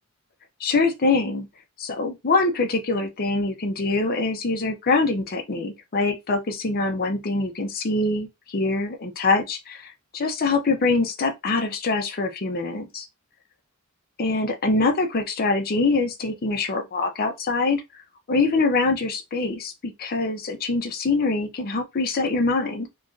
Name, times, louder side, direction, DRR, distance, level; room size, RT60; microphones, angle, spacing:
voice 1, 0.6-1.5 1.8-13.1 14.2-17.8 18.3-22.9, left 3 dB, 45° left, 0.6 m, -24 dB
3.0 x 2.5 x 3.8 m
head